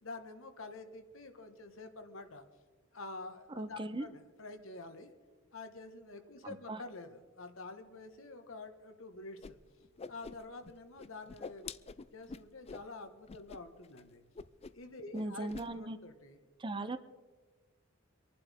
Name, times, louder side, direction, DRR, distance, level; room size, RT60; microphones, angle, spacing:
voice 1, 0.0-2.4 2.9-5.1 5.5-9.6 10.1-11.7 12.1-14.2 14.7-16.4, left 3 dB, 75° left, 6 dB, 1.4 m, -48 dB
voice 2, 3.6-4.0 6.4-6.8 15.1-16.0 16.6-17.0, right 2 dB, 25° right, 11 dB, 0.6 m, -38 dB
Whoosh swoosh swish, 9.4-9.5 9.8-10.7 11.0-12.9 13.3-13.6 13.8-14.0 14.3-14.9 15.1-15.7, left 4 dB, 30° left, 0.4 m, -46 dB
26.0 x 11.5 x 3.6 m, 1.4 s
head